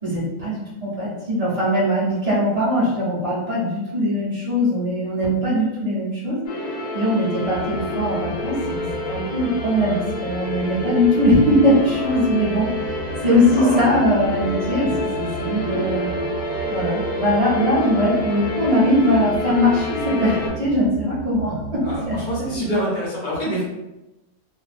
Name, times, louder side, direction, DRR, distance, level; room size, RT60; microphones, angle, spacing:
voice 1, 0.0-6.4 6.9-12.7 13.2-16.1 16.7-22.8, left 1 dB, 25° right, -8 dB, 1.0 m, -21 dB
sound 1, 6.5-20.5, left 1 dB, 65° left, 1.0 m, -28 dB
sound 2, 7.4-22.6, right 3 dB, 85° right, 1.2 m, -36 dB
voice 2, 13.5-13.9 21.8-23.6, equal, 45° left, -7 dB, 0.7 m, -26 dB
2.7 x 2.1 x 2.5 m, 1.0 s
omnidirectional pair, 1.7 m